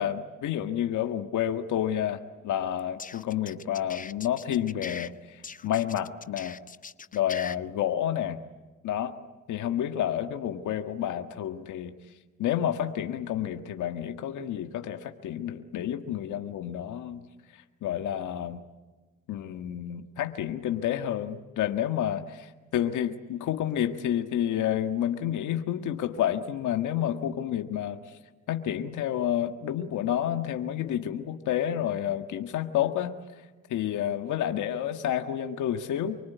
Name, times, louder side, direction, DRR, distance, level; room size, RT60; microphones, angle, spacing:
voice 1, 0.0-6.6 7.1-8.4 8.8-9.2 9.5-11.9 12.4-17.2 17.5-18.6 19.3-28.2 28.5-33.2 33.7-36.2, left 10 dB, 80° left, 6 dB, 1.7 m, -30 dB
sound 1, 2.8-5.1 5.4-7.6, left 5 dB, 25° left, 0.8 m, -41 dB
26.0 x 24.0 x 9.4 m, 1.2 s
cardioid pair, 90°, 30 cm